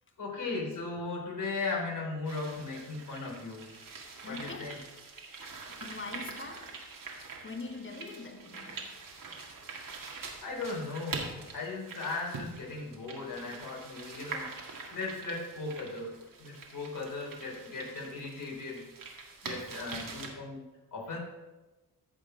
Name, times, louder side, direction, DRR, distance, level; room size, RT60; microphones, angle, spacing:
voice 1, 0.2-3.7 4.2-4.8 10.4-14.5 14.9-16.1 16.4-18.9 19.4-20.6 20.9-21.2, left 3 dB, 55° left, 3.7 m, -37 dB
sound 1, 2.2-20.3, right 4 dB, 60° right, 2.0 m, -44 dB
voice 2, 4.2-4.9 5.7-6.9 7.4-8.9 19.6-20.0, left 3 dB, 35° left, 1.5 m, -43 dB
14.5 x 5.0 x 4.6 m
cardioid pair, 70°, 37 cm